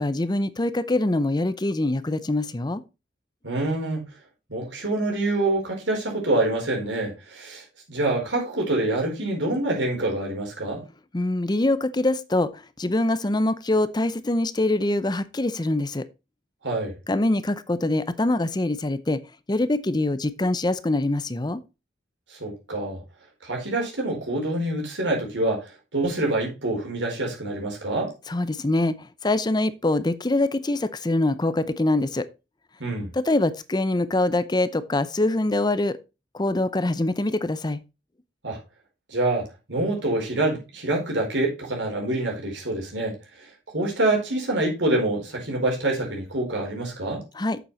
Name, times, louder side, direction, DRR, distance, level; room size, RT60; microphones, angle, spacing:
voice 1, 0.0-2.8 11.1-16.1 17.1-19.2 19.5-21.6 28.3-32.3 33.1-36.0 36.3-37.8 47.3-47.6, left 2 dB, 25° left, 0.6 m, -24 dB
voice 2, 3.4-4.0 4.5-10.8 16.6-16.9 22.3-23.0 23.4-25.7 25.9-28.1 32.8-33.1 38.4-38.6 39.1-43.2 43.7-47.2, right 2 dB, 85° right, 4.6 m, -26 dB
8.1 x 7.4 x 4.1 m
head